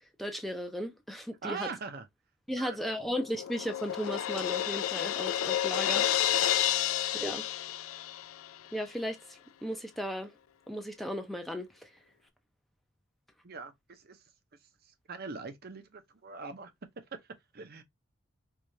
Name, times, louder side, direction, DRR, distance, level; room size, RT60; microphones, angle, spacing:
voice 1, 0.2-1.7 2.5-6.5 7.2-7.5 8.7-10.3 10.7-11.9, equal, ahead, 0.5 m, -36 dB
voice 2, 1.4-2.1 2.6-2.8 13.4-17.8, right 4 dB, 50° right, 0.7 m, -43 dB
Crash cymbal, 2.8-8.5, left 12 dB, 85° left, 0.3 m, -30 dB
4.6 x 2.4 x 2.7 m
head